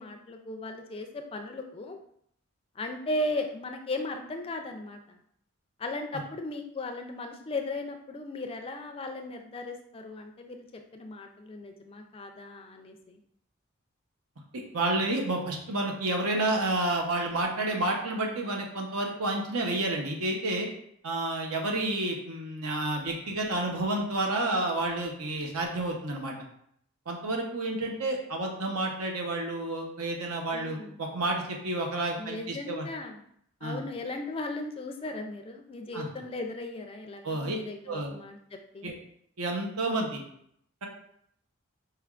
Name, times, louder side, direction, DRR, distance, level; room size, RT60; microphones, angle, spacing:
voice 1, 0.0-2.0 2.8-5.2 5.8-13.2 30.5-31.0 32.2-33.2 33.6-38.9, left 2 dB, 25° left, 4 dB, 0.3 m, -37 dB
voice 2, 14.7-20.7 21.0-26.3 27.1-32.9 33.6-33.8 35.9-36.1 37.2-37.6 37.9-38.1 38.8-38.9 39.4-40.2 40.8-40.9, right 2 dB, 80° right, 1 dB, 0.8 m, -30 dB
4.3 x 3.3 x 2.4 m, 0.70 s
head